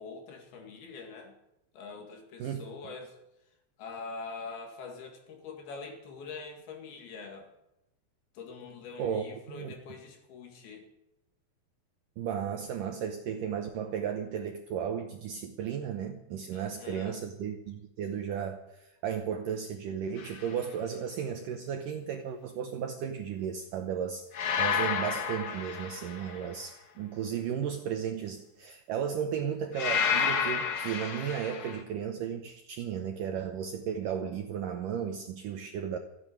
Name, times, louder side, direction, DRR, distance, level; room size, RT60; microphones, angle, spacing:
voice 1, 0.0-1.4 1.7-3.2 3.8-7.5 8.4-10.9 16.5-17.2, left 4 dB, 65° left, 4 dB, 3.9 m, -44 dB
voice 2, 9.0-9.7 12.2-36.0, right 8 dB, 75° right, 5 dB, 2.0 m, -34 dB
sound 1, 20.2-20.5 24.3-26.5 29.7-31.8, left 6 dB, 90° left, 1.2 m, -30 dB
14.5 x 9.6 x 9.0 m, 0.90 s
omnidirectional pair, 4.9 m